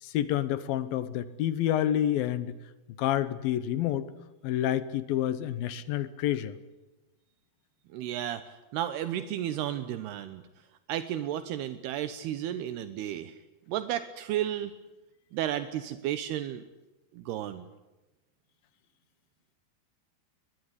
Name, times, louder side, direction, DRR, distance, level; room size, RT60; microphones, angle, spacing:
voice 1, 0.0-2.6 3.0-4.1 4.4-6.5, left 11 dB, 70° left, 15 dB, 2.5 m, -28 dB
voice 2, 7.9-8.4 8.7-10.4 10.9-13.4 13.7-14.7 15.3-16.6 17.1-17.6, right 11 dB, 80° right, 11 dB, 2.9 m, -33 dB
22.5 x 21.5 x 9.9 m, 1.0 s
omnidirectional pair, 4.7 m